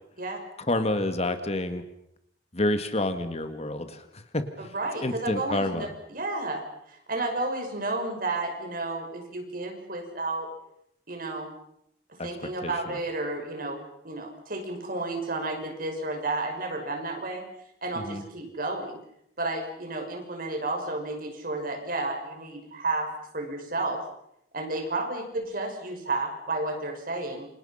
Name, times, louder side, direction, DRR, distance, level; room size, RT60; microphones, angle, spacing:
voice 1, 0.6-1.8 2.5-4.7 5.0-5.9 12.2-12.3 12.6-13.0 17.9-18.2, left 1 dB, 35° left, 9 dB, 1.9 m, -29 dB
voice 2, 4.6-6.6 6.9-10.5 11.1-11.5 12.2-13.8 14.0-17.4 17.8-19.0 19.4-23.1 23.3-24.0 24.5-27.5, right 2 dB, 50° right, 3 dB, 5.9 m, -32 dB
28.5 x 26.0 x 5.8 m, 0.75 s
head